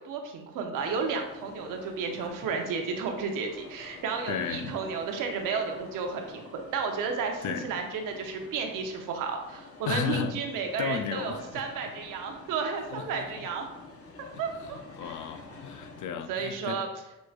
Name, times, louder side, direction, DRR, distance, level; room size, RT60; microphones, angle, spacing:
voice 1, 0.0-13.7 14.4-15.2 16.3-16.9, right 5 dB, 80° right, 3 dB, 0.8 m, -32 dB
sound 1, 0.7-16.1, left 3 dB, 45° left, 1.0 m, -49 dB
voice 2, 4.3-4.8 7.4-7.7 9.9-10.3 10.8-11.6 12.9-13.5 14.2-16.8, left 7 dB, 65° left, 8 dB, 0.6 m, -34 dB
6.4 x 3.1 x 2.4 m, 0.99 s
supercardioid pair, 65°, 32 cm